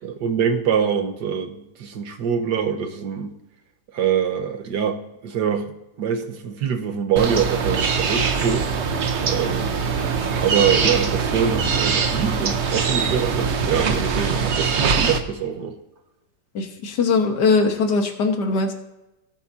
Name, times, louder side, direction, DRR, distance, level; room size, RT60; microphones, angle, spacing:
voice 1, 0.0-3.4 3.9-5.7 6.0-8.8 9.2-9.7 10.4-15.8, right 7 dB, 90° right, 5 dB, 1.7 m, -24 dB
sound 1, 7.2-15.2, right 5 dB, 50° right, 1.1 m, -22 dB
voice 2, 16.6-18.7, left 4 dB, 85° left, 4 dB, 1.9 m, -20 dB
19.0 x 8.4 x 2.7 m, 0.95 s
omnidirectional pair, 1.8 m